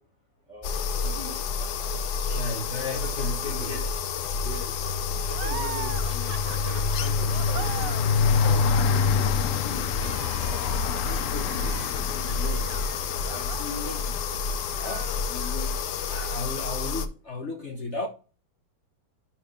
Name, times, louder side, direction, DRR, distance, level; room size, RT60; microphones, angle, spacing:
voice 1, 0.5-1.9 2.5-4.0 4.4-4.7 5.2-8.0 8.3-10.5 10.9-12.7 13.3-14.2 15.3-15.9, left 2 dB, 15° left, 2.7 m, -41 dB
sound 1, 0.6-17.1, left 5 dB, 65° left, 1.2 m, -30 dB
sound 2, 2.3-2.6 2.9-16.0, left 6 dB, 85° left, 0.7 m, -29 dB
voice 2, 2.3-3.8 14.8-15.1 16.1-18.1, left 2 dB, 45° left, 1.1 m, -34 dB
sound 3, 5.3-14.4 14.7-15.8, right 12 dB, 75° right, 1.1 m, -41 dB
10.5 x 4.2 x 3.6 m
omnidirectional pair, 2.1 m